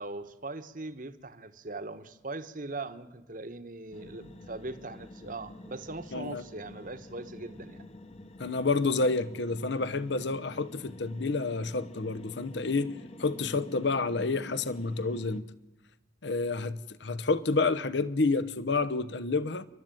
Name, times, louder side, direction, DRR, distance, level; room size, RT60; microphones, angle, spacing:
voice 1, 0.0-7.9, right 2 dB, 45° right, 1.2 m, -40 dB
sound 1, 3.9-15.4, left 2 dB, 30° left, 1.1 m, -48 dB
voice 2, 6.1-6.4 8.4-12.9 13.2-15.5 16.2-19.7, left 3 dB, 60° left, 0.9 m, -29 dB
29.5 x 12.5 x 9.1 m
head